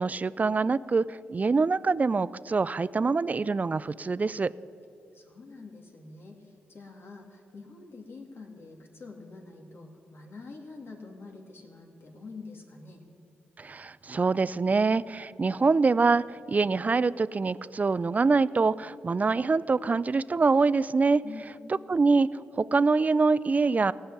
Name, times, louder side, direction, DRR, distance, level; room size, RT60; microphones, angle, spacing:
voice 1, 0.0-4.5 13.6-21.2 21.9-22.3 22.6-23.9, right 4 dB, 35° right, 18 dB, 0.4 m, -25 dB
voice 2, 5.1-13.0 21.2-21.8, left 3 dB, 60° left, 1 dB, 2.3 m, -46 dB
16.5 x 5.6 x 9.6 m, 2.4 s
supercardioid pair, 55°, 4 cm